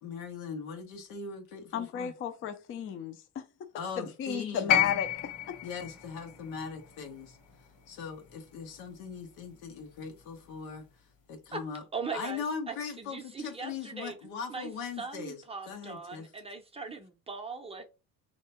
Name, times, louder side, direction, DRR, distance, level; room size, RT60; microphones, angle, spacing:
voice 1, 0.0-2.1 3.7-4.8 5.6-7.4 7.9-10.9 11.3-11.8 12.1-16.3, left 5 dB, 85° left, 1.2 m, -40 dB
voice 2, 1.7-3.2 4.0-5.1 5.5-5.6, left 8 dB, 35° left, 0.5 m, -33 dB
sound 1, 4.7-8.9 10.1-10.2, left 10 dB, 65° left, 1.4 m, -32 dB
voice 3, 11.9-14.2 14.5-14.7 15.0-17.9, right 4 dB, 15° right, 0.6 m, -40 dB
3.3 x 2.8 x 4.2 m
cardioid pair, 135°, 36 cm